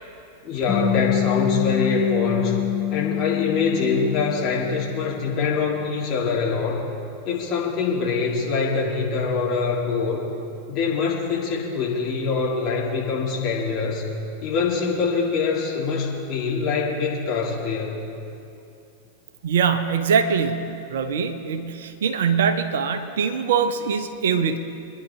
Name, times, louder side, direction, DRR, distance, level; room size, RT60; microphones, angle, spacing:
voice 1, 0.4-2.6 2.9-6.9 7.2-10.2 10.7-14.0 14.4-18.0, left 4 dB, 35° left, -4 dB, 3.4 m, -24 dB
sound 1, 0.7-5.3, left 12 dB, 20° left, 4.1 m, -26 dB
voice 2, 19.4-24.6, right 6 dB, 60° right, 8 dB, 0.9 m, -23 dB
25.5 x 10.5 x 3.7 m, 2.7 s
figure-of-eight pair, 90°, 0 cm